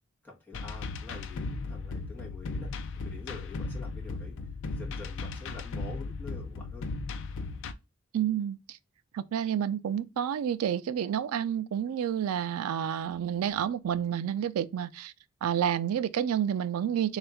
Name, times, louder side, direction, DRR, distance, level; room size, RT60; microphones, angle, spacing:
voice 1, 0.2-4.4 4.7-6.9, left 3 dB, 10° left, 1.4 m, -47 dB
sound 1, 0.5-7.7, left 3 dB, 60° left, 0.4 m, -36 dB
voice 2, 8.1-8.8 9.1-15.1 15.4-17.2, right 9 dB, 85° right, 0.3 m, -29 dB
3.4 x 2.4 x 4.3 m
head